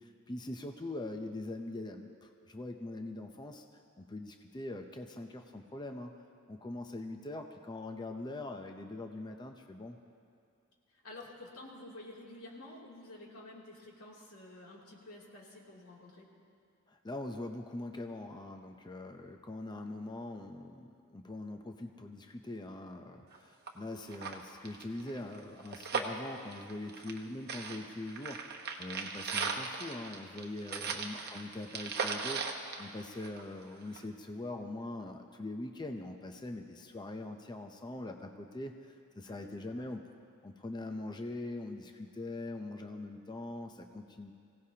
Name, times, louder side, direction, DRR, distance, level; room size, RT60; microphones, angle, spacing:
voice 1, 0.0-3.6 4.0-6.2 6.5-10.0 16.9-32.4 32.8-40.1 40.4-44.3, left 2 dB, 20° left, 4 dB, 0.6 m, -42 dB
voice 2, 10.9-16.3 31.0-31.1 39.2-39.9, left 2 dB, 90° left, -3 dB, 2.9 m, -50 dB
sound 1, 23.3-23.4 23.7-23.8 24.1-27.2 27.5-33.6 34.0-34.1, right 5 dB, 50° right, 1.1 m, -38 dB
24.0 x 17.0 x 2.9 m, 2.4 s
head